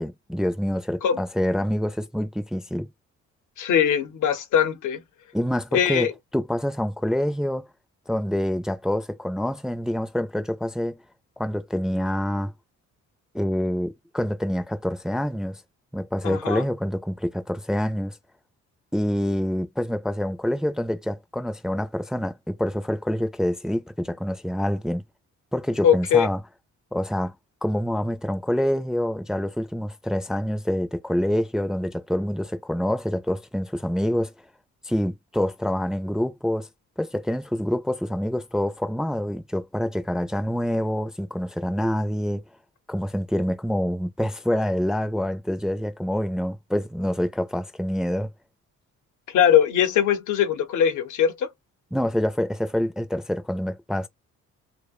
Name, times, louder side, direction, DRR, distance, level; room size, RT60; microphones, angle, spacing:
voice 1, 0.0-2.9 5.3-6.1 6.3-7.7 8.1-11.0 11.4-12.5 13.3-15.6 15.9-18.2 18.9-25.0 25.5-26.4 26.9-27.3 27.6-34.3 34.8-36.7 37.0-42.4 42.9-48.3 51.9-54.1, equal, ahead, 0.4 m, -26 dB
voice 2, 3.6-5.0 5.7-6.1 16.2-16.6 25.8-26.3 49.3-51.5, left 9 dB, 80° left, 0.7 m, -21 dB
2.6 x 2.1 x 2.3 m
cardioid pair, 90°, 30 cm